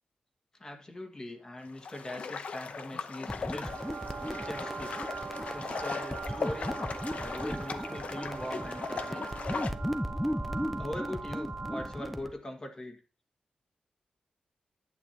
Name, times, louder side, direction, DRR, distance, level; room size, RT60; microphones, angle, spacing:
voice 1, 0.5-3.7 4.4-5.1 5.5-6.8 7.1-9.3 10.8-13.0, left 1 dB, 30° left, 4 dB, 1.7 m, -41 dB
sound 1, 1.6-9.7, left 5 dB, 65° left, 0.8 m, -39 dB
sound 2, 3.3-12.3, equal, ahead, 0.7 m, -37 dB
sound 3, 3.4-12.3, right 5 dB, 50° right, 0.9 m, -41 dB
10.5 x 8.9 x 2.8 m, 0.37 s
wide cardioid pair, 110°, 2 cm